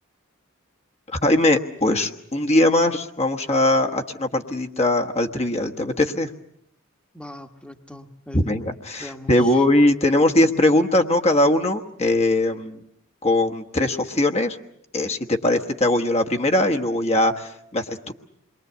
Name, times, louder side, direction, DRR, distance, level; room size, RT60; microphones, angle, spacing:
voice 1, 1.1-6.3 8.3-12.8 13.2-14.6 14.9-18.1, left 1 dB, 30° left, 4 dB, 1.3 m, -20 dB
voice 2, 7.1-8.6 9.0-9.6, left 1 dB, 5° left, 5 dB, 1.4 m, -40 dB
28.0 x 22.5 x 8.1 m, 0.74 s
head